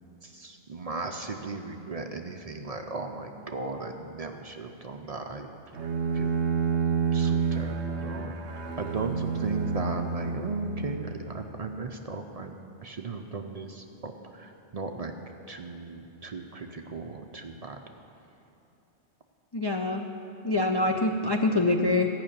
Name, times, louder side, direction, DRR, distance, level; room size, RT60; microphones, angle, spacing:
voice 1, 0.2-5.5 6.1-6.3 7.1-12.5 12.8-15.1 15.5-17.8 20.9-21.0, right 3 dB, 45° right, 4 dB, 0.6 m, -36 dB
Bowed string instrument, 5.7-11.6, right 5 dB, 85° right, 1.1 m, -29 dB
voice 2, 19.5-20.0 20.4-22.1, left 2 dB, 40° left, 3 dB, 0.3 m, -25 dB
14.0 x 5.8 x 8.7 m, 2.9 s
omnidirectional pair, 1.1 m